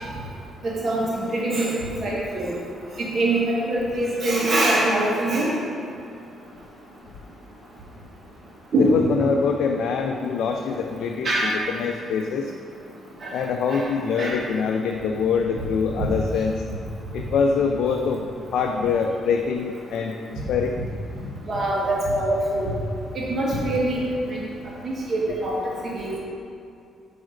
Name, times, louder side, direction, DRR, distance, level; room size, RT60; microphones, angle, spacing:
voice 1, 0.6-1.7 2.0-2.5 3.1-5.5 8.7-9.0 11.2-11.5 13.2-13.3 13.7-13.8 14.1-14.4 16.0-16.1 21.5-22.7 23.1-24.4 24.8-26.1, right 1 dB, 45° right, -4 dB, 1.5 m, -23 dB
voice 2, 8.8-12.5 13.3-16.5 17.1-20.8, left 5 dB, 75° left, 3 dB, 0.5 m, -24 dB
6.2 x 4.9 x 6.4 m, 2.6 s
cardioid pair, 90°, 0 cm